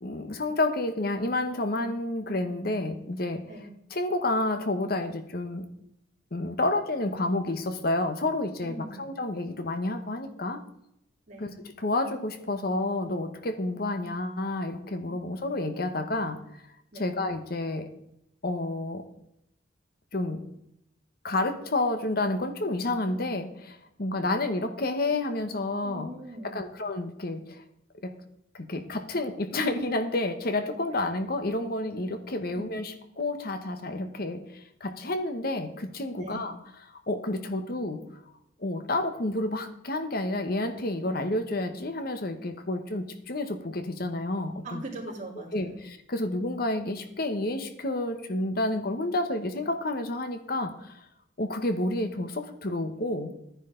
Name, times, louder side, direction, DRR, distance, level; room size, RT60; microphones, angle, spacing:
voice 1, 0.0-3.4 3.9-5.7 6.3-10.6 11.4-16.4 17.0-17.9 18.4-19.0 20.1-20.4 21.2-26.1 26.4-27.6 28.0-28.1 28.5-36.5 36.8-38.0 38.6-44.8 45.5-51.0 51.4-53.3, left 2 dB, 55° left, 8 dB, 1.1 m, -30 dB
voice 2, 8.6-9.0 11.3-11.5 15.0-15.1 16.9-17.1 25.8-26.6 30.9-31.0 32.5-32.7 36.1-36.4 44.6-45.8, right 1 dB, 40° right, -3 dB, 3.7 m, -41 dB
13.0 x 10.0 x 3.9 m, 0.76 s
head